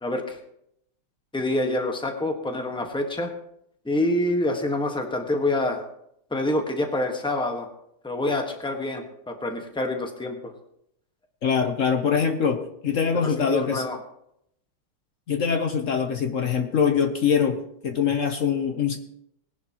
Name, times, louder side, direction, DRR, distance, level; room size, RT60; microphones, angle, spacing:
voice 1, 0.0-0.4 1.3-3.3 3.8-5.8 6.3-7.7 8.0-10.5 13.2-14.0, left 1 dB, 5° left, 3 dB, 1.0 m, -26 dB
voice 2, 11.4-13.8 15.3-19.0, left 6 dB, 60° left, 6 dB, 0.8 m, -23 dB
19.5 x 11.0 x 3.0 m, 0.75 s
omnidirectional pair, 2.3 m